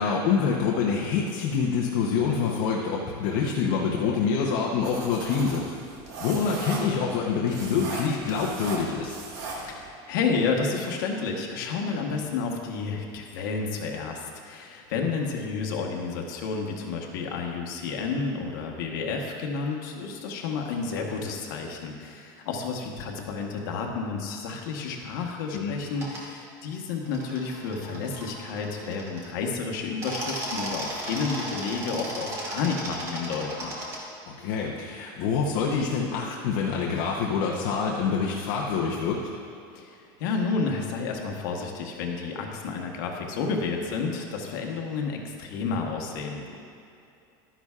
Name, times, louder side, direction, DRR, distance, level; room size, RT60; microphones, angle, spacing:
voice 1, 0.0-5.7 6.2-9.2 25.5-25.8 33.6-33.7 34.3-39.3, left 5 dB, 50° left, -3 dB, 0.8 m, -26 dB
sound 1, 4.8-9.9, right 3 dB, 65° right, 1.6 m, -38 dB
voice 2, 9.6-33.7 39.7-46.6, left 4 dB, 65° left, 1 dB, 1.3 m, -31 dB
sound 2, 25.9-26.2 27.0-29.4 29.9-34.0, right 1 dB, 25° right, 1.2 m, -36 dB
12.0 x 10.0 x 2.4 m, 2.6 s
supercardioid pair, 175°, 11 cm